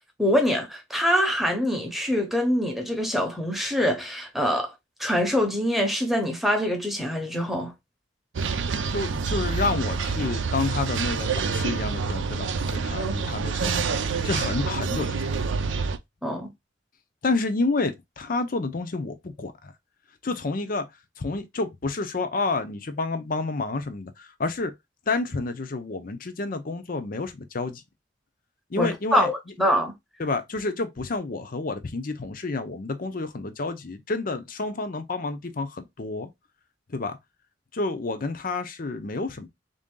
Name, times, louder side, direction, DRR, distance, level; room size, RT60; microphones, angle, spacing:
voice 1, 0.2-4.7 5.0-7.7 13.0-13.1 16.2-16.5 28.8-29.9, equal, ahead, 0.8 m, -24 dB
sound 1, 8.3-16.0, right 5 dB, 80° right, 0.5 m, -27 dB
voice 2, 8.9-15.3 17.2-19.7 20.2-20.9 21.2-24.7 25.1-27.8 28.7-29.3 30.2-36.3 36.9-37.2 37.7-39.5, left 3 dB, 50° left, 0.6 m, -29 dB
3.6 x 2.7 x 3.7 m
head